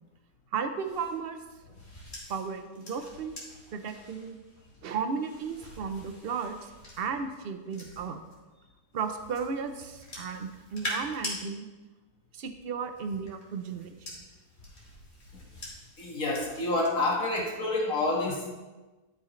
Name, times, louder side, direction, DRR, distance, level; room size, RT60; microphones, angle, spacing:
voice 1, 0.5-1.4 2.3-3.4 3.7-4.4 4.8-6.6 7.0-8.2 8.9-11.7 12.3-13.9, right 5 dB, 50° right, 8 dB, 0.7 m, -34 dB
sound 1, 0.8-8.4 8.9-11.4 12.6-16.9 17.3-17.6, left 1 dB, 40° left, 2.9 m, -44 dB
voice 2, 16.0-18.6, left 2 dB, 55° left, -3 dB, 2.2 m, -28 dB
12.5 x 8.8 x 3.2 m, 1.2 s
omnidirectional pair, 1.7 m